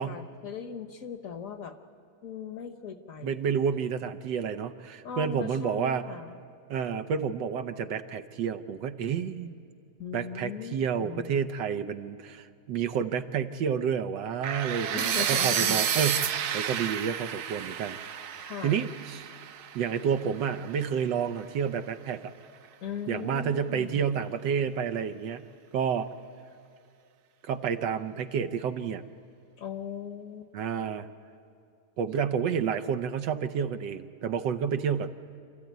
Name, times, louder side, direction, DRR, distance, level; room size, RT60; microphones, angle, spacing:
voice 1, 0.0-1.7 2.2-3.5 5.0-6.4 10.0-10.7 11.0-11.3 14.9-15.8 18.4-18.9 22.8-24.0 29.6-30.5, left 7 dB, 55° left, 8 dB, 1.3 m, -39 dB
voice 2, 3.2-6.0 6.7-9.5 10.1-18.0 18.6-19.3 19.7-22.3 23.1-25.4 25.7-26.1 27.4-29.0 30.5-31.1 32.0-35.1, right 7 dB, 90° right, 10 dB, 1.5 m, -30 dB
sound 1, 14.4-20.4, right 9 dB, 65° right, 1.2 m, -30 dB
28.0 x 13.5 x 9.3 m, 2.4 s
omnidirectional pair, 1.9 m